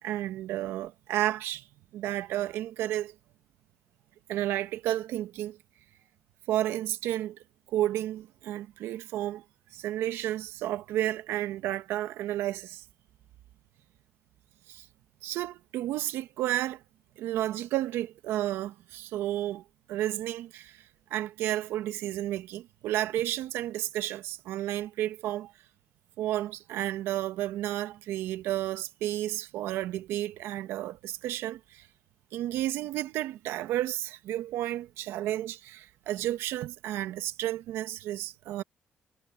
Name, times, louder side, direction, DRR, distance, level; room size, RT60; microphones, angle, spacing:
voice 1, 0.0-1.7 1.9-3.1 4.3-5.6 6.5-7.4 7.7-9.4 9.7-12.8 14.7-14.9 15.2-16.8 17.2-19.6 19.9-25.5 26.2-31.9 32.3-38.6, right 13 dB, 85° right, 1.5 m, -32 dB
supercardioid pair, 50°, 4 cm